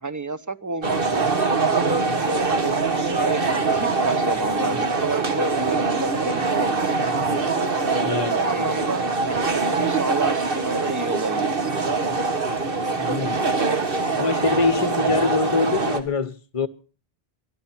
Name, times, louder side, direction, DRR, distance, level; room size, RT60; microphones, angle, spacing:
voice 1, 0.0-7.3 8.3-11.9, right 3 dB, 20° right, 0.7 m, -30 dB
sound 1, 0.8-16.0, right 4 dB, 60° right, 1.8 m, -23 dB
voice 2, 8.0-8.4 13.0-13.4 14.1-16.7, left 4 dB, 35° left, 1.0 m, -24 dB
23.5 x 12.5 x 4.4 m
omnidirectional pair, 1.1 m